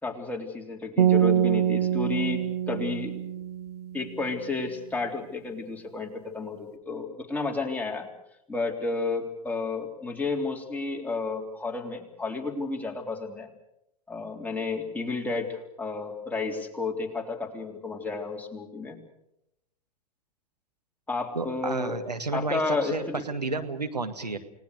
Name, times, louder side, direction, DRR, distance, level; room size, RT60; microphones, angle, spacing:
voice 1, 0.0-3.3 3.9-8.1 8.5-13.5 14.1-19.0 21.1-22.0 22.3-23.2, left 3 dB, 10° left, 1 dB, 3.5 m, -32 dB
sound 1, 1.0-4.2, right 10 dB, 75° right, 2.1 m, -25 dB
voice 2, 21.3-24.4, right 3 dB, 90° right, 7 dB, 1.8 m, -31 dB
29.5 x 19.0 x 6.6 m, 0.84 s
figure-of-eight pair, 95°, 20 cm